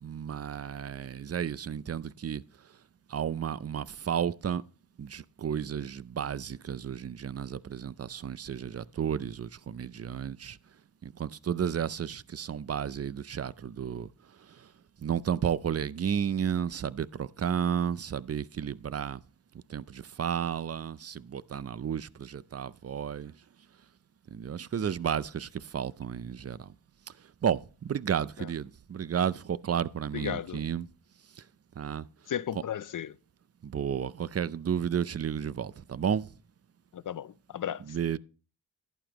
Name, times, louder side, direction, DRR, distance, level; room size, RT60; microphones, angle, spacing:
voice 1, 0.0-2.4 3.1-4.6 5.0-10.6 11.0-14.1 14.4-14.7 15.0-19.2 19.7-23.3 24.3-26.7 27.2-30.9 31.3-31.4 31.8-32.1 32.5-32.6 33.6-36.3 37.8-38.2, right 8 dB, 35° right, 0.4 m, -32 dB
voice 2, 30.1-30.6 32.3-33.1 36.9-37.8, left 9 dB, 45° left, 0.4 m, -34 dB
11.5 x 9.2 x 3.0 m
cardioid pair, 40°, 45 cm